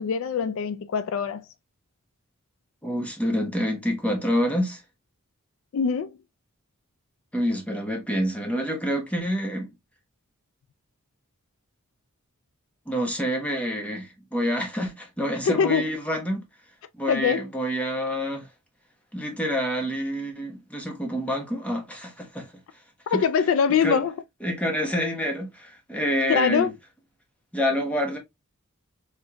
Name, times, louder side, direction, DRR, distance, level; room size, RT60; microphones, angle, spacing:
voice 1, 0.0-1.4 5.7-6.2 15.4-15.9 17.1-17.5 23.1-24.1 26.3-26.7, left 6 dB, 65° left, 0.3 m, -23 dB
voice 2, 2.8-4.8 7.3-9.7 12.9-16.4 17.0-18.5 19.1-22.5 23.1-23.2 23.8-24.0 24.4-26.7 27.5-28.2, equal, 5° left, 1.0 m, -27 dB
4.3 x 3.5 x 2.2 m
head